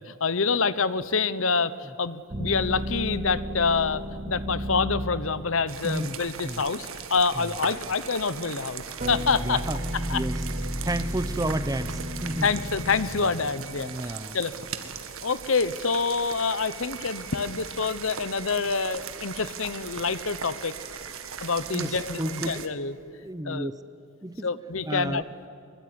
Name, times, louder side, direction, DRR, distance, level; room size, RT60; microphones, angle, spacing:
voice 1, 0.0-9.6 10.1-10.2 12.4-14.5 15.2-20.7 21.4-22.9 23.4-23.7 24.4-25.2, left 4 dB, 70° left, 15 dB, 1.0 m, -27 dB
sound 1, 2.3-5.4 9.0-13.6, equal, 35° right, 1.8 m, -33 dB
sound 2, 5.7-22.7, right 7 dB, 75° right, 1.8 m, -39 dB
voice 2, 5.8-6.2 6.4-6.6 7.3-7.5 9.3-9.8 10.1-10.4 10.8-12.5 13.8-14.4 21.7-22.6 23.1-23.8 24.2-24.5 24.9-25.2, right 1 dB, 15° right, 13 dB, 0.9 m, -32 dB
24.0 x 22.5 x 9.7 m, 2.5 s
head